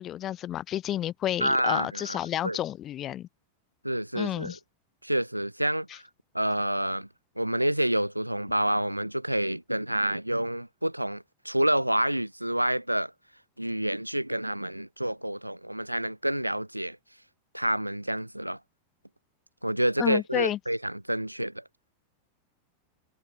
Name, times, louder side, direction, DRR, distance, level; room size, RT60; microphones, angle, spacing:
voice 1, 0.0-3.3 4.1-4.6 20.0-20.6, left 12 dB, 30° left, 0.7 m, -30 dB
voice 2, 1.4-2.2 2.4-2.6 3.8-4.6 5.0-6.1 6.3-7.1 7.4-13.1 13.6-17.0 17.5-18.6 19.6-21.6, right 1 dB, 90° right, 0.6 m, -28 dB
figure-of-eight pair, 90°, 0 cm